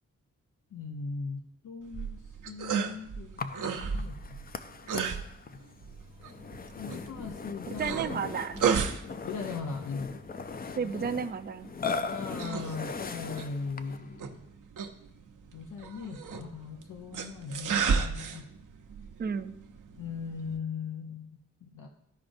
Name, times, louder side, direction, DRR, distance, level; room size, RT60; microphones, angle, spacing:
voice 1, 0.7-3.4 3.7-4.5 6.7-8.3 9.3-10.1 10.7-11.1 12.0-14.4 15.5-18.5 20.0-21.9, left 5 dB, 85° left, 2 dB, 0.8 m, -39 dB
sound 1, 1.8-20.6, right 6 dB, 85° right, 0.8 m, -35 dB
Burping eructation, 3.4-14.1, left 4 dB, 30° left, 0.4 m, -39 dB
voice 2, 7.8-8.6 10.8-11.7 19.2-19.5, right 6 dB, 35° right, 9 dB, 0.4 m, -32 dB
14.0 x 5.0 x 2.6 m, 0.76 s
wide cardioid pair, 140°, 30 cm